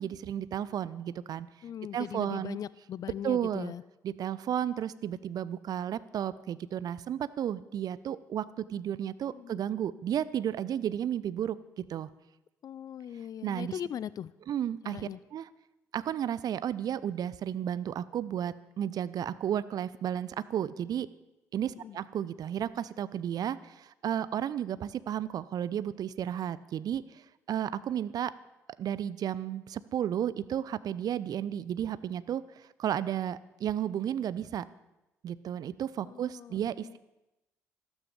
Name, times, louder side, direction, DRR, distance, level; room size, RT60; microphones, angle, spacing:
voice 1, 0.0-1.5 1.9-2.6 3.2-3.7 4.0-12.1 13.4-13.7 14.5-15.0 15.3-15.5 15.9-21.1 21.5-28.3 28.8-34.7 35.2-37.0, right 10 dB, 50° right, 17 dB, 0.6 m, -33 dB
voice 2, 1.6-3.8 9.3-9.6 12.6-14.3 14.8-15.2 21.7-22.0 36.0-37.0, left 9 dB, 45° left, 19 dB, 0.5 m, -40 dB
13.5 x 13.0 x 6.8 m, 0.95 s
figure-of-eight pair, 50°, 9 cm